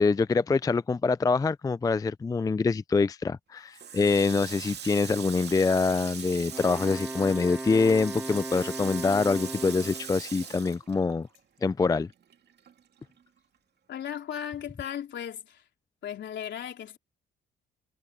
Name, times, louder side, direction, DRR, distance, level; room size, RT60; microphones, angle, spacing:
voice 1, 0.0-11.3 11.6-12.1, left 4 dB, 20° left, 0.4 m, -25 dB
Water tap faucet, 3.7-11.6 11.9-13.2, right 8 dB, 55° right, 2.6 m, -41 dB
sound 1, 4.8-11.4, left 14 dB, 85° left, 4.7 m, -56 dB
Wind instrument woodwind instrument, 6.5-10.2, right 1 dB, 10° right, 2.5 m, -37 dB
voice 2, 13.9-15.6 16.0-17.0, left 9 dB, 65° left, 3.9 m, -36 dB
cardioid pair, 90°, 20 cm